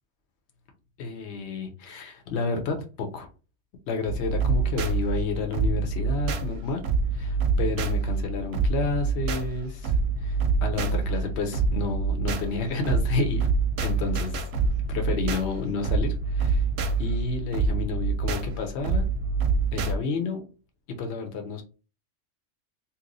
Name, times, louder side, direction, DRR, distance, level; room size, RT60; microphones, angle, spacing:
voice 1, 1.0-3.3 3.9-6.8 7.1-9.9 10.2-13.4 13.8-14.5 14.9-16.6 17.0-19.1 19.7-20.4 21.0-21.6, left 4 dB, 70° left, 1.0 m, -30 dB
sound 1, 4.1-20.0, right 4 dB, 65° right, 0.8 m, -26 dB
2.9 x 2.1 x 3.9 m
omnidirectional pair, 1.2 m